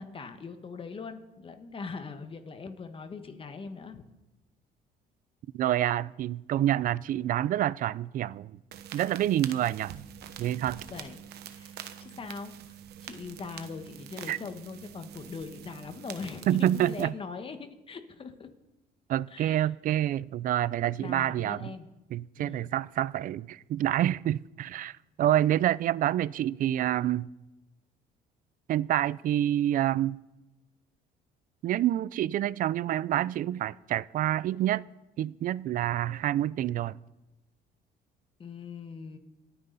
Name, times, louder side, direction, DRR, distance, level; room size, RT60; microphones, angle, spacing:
voice 1, 0.0-4.0 10.9-11.2 11.4-18.5 19.3-19.7 21.0-21.9 22.4-22.6 38.4-39.2, left 4 dB, 30° left, 1.4 m, -41 dB
voice 2, 5.5-8.5 8.9-9.9 10.4-10.8 14.3-14.4 16.5-17.1 19.1-21.7 22.1-27.3 28.7-30.2 31.6-34.9 35.2-37.0, right 12 dB, 55° right, 0.4 m, -27 dB
sound 1, 8.7-17.0, right 10 dB, 75° right, 1.1 m, -45 dB
27.5 x 9.6 x 4.0 m
cardioid pair, 110°, 17 cm